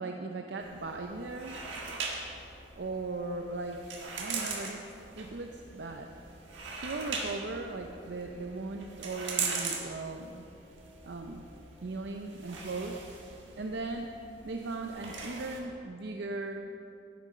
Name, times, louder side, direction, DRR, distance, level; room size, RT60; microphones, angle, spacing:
voice 1, 0.0-1.6 2.8-3.9 4.2-4.8 5.2-6.1 6.7-10.4 11.0-11.5 11.8-13.2 13.6-14.1 14.4-16.7, right 3 dB, 65° right, 3 dB, 0.6 m, -38 dB
sound 1, 0.6-15.6, right 4 dB, 90° right, 1.6 m, -41 dB
11.5 x 9.2 x 5.6 m, 2.7 s
head